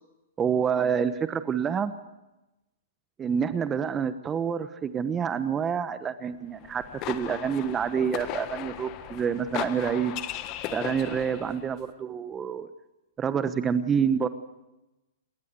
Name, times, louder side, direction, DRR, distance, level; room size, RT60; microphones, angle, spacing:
voice 1, 0.4-1.9 3.2-10.1 10.7-12.7 13.2-14.3, right 7 dB, 20° right, 12 dB, 1.0 m, -27 dB
sound 1, 6.6-11.7, left 13 dB, 35° left, 1.4 m, -37 dB
28.0 x 12.5 x 8.2 m, 0.99 s
hypercardioid pair, 130°, 0 cm